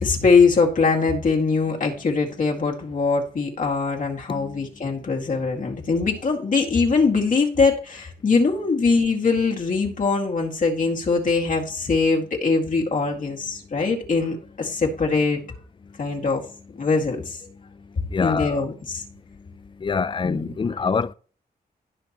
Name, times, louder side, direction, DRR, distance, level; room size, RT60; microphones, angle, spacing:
voice 1, 0.0-15.4 16.0-16.4 16.8-17.4 18.2-19.0 20.2-20.5, left 4 dB, 50° left, 2.0 m, -22 dB
voice 2, 4.3-4.6 18.1-18.6 19.8-21.1, left 5 dB, 30° left, 0.4 m, -25 dB
17.0 x 5.9 x 3.0 m
wide cardioid pair, 105°, 17 cm